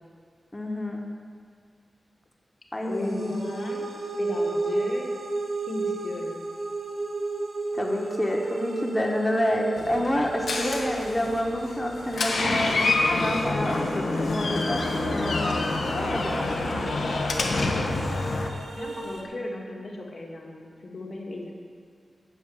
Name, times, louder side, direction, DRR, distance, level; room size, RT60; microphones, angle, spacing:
voice 1, 0.5-1.0 2.7-3.4 7.7-15.6 16.0-16.8, left 1 dB, 15° left, 0 dB, 1.2 m, -29 dB
voice 2, 2.8-3.9 4.2-5.1 5.7-6.3 16.4-16.9 17.5-18.0 18.8-21.5, left 2 dB, 60° left, -1 dB, 2.0 m, -36 dB
sound 1, 2.9-19.2, right 3 dB, 80° right, 1.7 m, -33 dB
Door, 9.8-18.5, left 2 dB, 90° left, 1.2 m, -27 dB
9.5 x 6.6 x 8.9 m, 2.4 s
wide cardioid pair, 100°, 0 cm